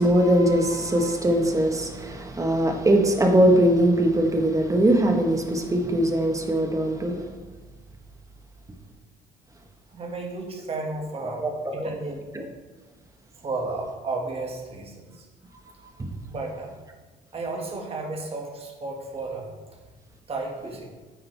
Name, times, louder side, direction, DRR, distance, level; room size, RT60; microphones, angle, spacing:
voice 1, 0.0-7.2 11.4-11.9 16.0-16.1, right 1 dB, 20° right, 3 dB, 1.3 m, -21 dB
voice 2, 9.9-12.5 13.4-15.3 16.3-16.8 17.3-19.8 20.3-20.9, right 3 dB, 35° right, 1 dB, 1.9 m, -33 dB
8.9 x 8.6 x 3.4 m, 1.3 s
cardioid pair, 110°, 17 cm